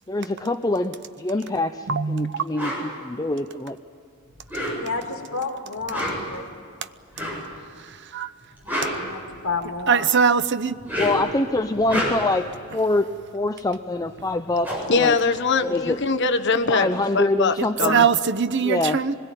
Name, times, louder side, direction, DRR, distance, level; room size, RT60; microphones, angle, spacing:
voice 1, 0.1-3.8 10.9-13.1 13.3-15.2 15.6-16.0 16.7-18.0 18.6-19.0, left 2 dB, 15° left, 8 dB, 0.6 m, -25 dB
voice 2, 1.9-2.4 8.1-8.3 9.9-10.8 17.8-19.1, right 6 dB, 55° right, 13 dB, 0.8 m, -21 dB
sound 1, 2.6-2.8 4.4-5.1 5.8-6.4 7.1-7.5 8.4-9.7 10.7-11.3 11.7-12.4 14.0-14.1 14.3-16.0, equal, 10° right, 7.8 m, -29 dB
voice 3, 4.7-6.4 8.9-10.1, left 4 dB, 80° left, 4 dB, 2.1 m, -30 dB
voice 4, 14.9-16.9 17.1-18.0, left 4 dB, 55° left, 7 dB, 1.3 m, -22 dB
24.5 x 21.5 x 9.1 m, 2.4 s
head